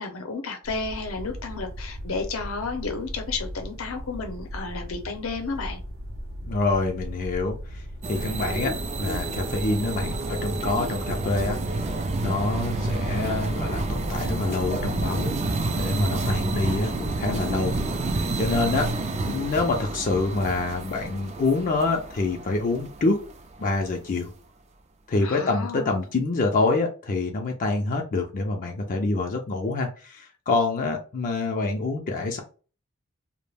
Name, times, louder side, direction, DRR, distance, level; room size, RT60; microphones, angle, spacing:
voice 1, 0.0-5.8 25.2-26.0, left 4 dB, 80° left, 0.6 m, -32 dB
sound 1, 0.6-18.9, equal, 75° right, 0.6 m, -37 dB
voice 2, 6.4-12.0 12.2-15.3 15.7-18.9 19.2-23.2 23.6-24.3 25.1-32.4, left 3 dB, 40° left, 0.4 m, -26 dB
sound 2, 8.0-23.3, right 3 dB, 35° right, 0.3 m, -29 dB
2.3 x 2.1 x 3.3 m
head